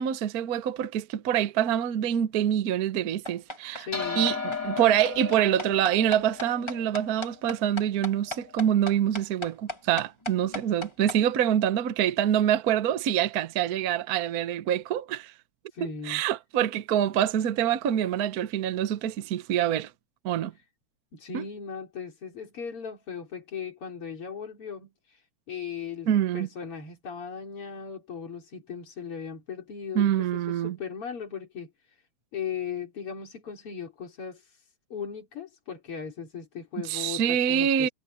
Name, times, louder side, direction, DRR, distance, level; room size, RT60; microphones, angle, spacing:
voice 1, 0.0-3.9 4.2-15.3 16.1-19.9 20.2-20.5 21.3-21.4 26.1-26.5 29.9-30.8 36.9-37.9, right 10 dB, 55° right, 1.2 m, -25 dB
sound 1, 3.2-11.2, left 1 dB, 15° left, 2.2 m, -36 dB
voice 2, 3.8-4.3 11.2-11.4 15.7-16.2 21.1-32.0 32.3-34.6 34.9-37.9, left 7 dB, 85° left, 4.5 m, -38 dB
sound 2, 3.9-8.6, left 4 dB, 40° left, 4.5 m, -36 dB
omnidirectional pair, 2.4 m